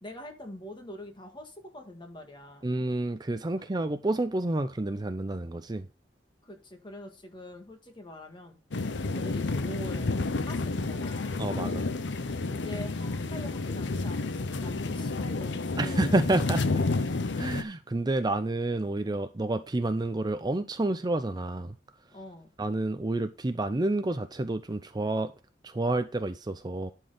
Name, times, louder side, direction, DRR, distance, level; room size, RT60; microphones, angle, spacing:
voice 1, 0.0-2.7 6.4-8.6 9.1-10.1 10.4-11.4 12.5-16.1 22.1-22.5, left 1 dB, 25° left, 1.9 m, -44 dB
voice 2, 2.6-5.9 11.4-11.9 15.8-16.8 17.4-21.7 22.6-25.3 25.6-26.9, right 2 dB, 25° right, 0.5 m, -29 dB
sound 1, 8.7-17.6, left 3 dB, 85° left, 0.7 m, -30 dB
11.0 x 4.6 x 4.9 m
head